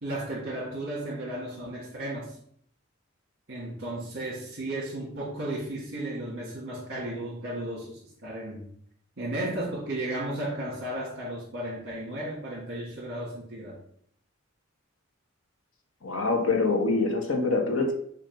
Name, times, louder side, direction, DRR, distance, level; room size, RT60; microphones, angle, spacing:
voice 1, 0.0-2.4 3.5-8.6 9.2-13.8, right 1 dB, 55° right, -7 dB, 2.1 m, -34 dB
voice 2, 16.0-17.9, left 3 dB, 90° left, 3 dB, 1.2 m, -25 dB
7.2 x 2.8 x 5.3 m, 0.65 s
head